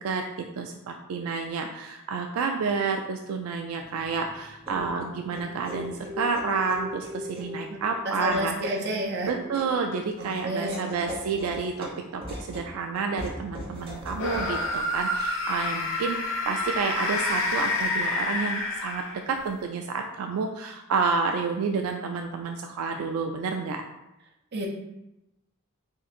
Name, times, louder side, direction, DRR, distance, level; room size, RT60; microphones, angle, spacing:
voice 1, 0.0-8.8 9.2-23.8, right 4 dB, 80° right, 4 dB, 0.3 m, -30 dB
sound 1, 3.8-14.6, equal, 25° right, 1.0 m, -40 dB
voice 2, 8.0-9.3 10.4-10.8 24.5-24.7, right 1 dB, 50° right, 0 dB, 0.7 m, -29 dB
sound 2, 14.1-19.4, left 2 dB, 60° left, 0.7 m, -28 dB
3.6 x 2.5 x 4.1 m, 0.93 s
head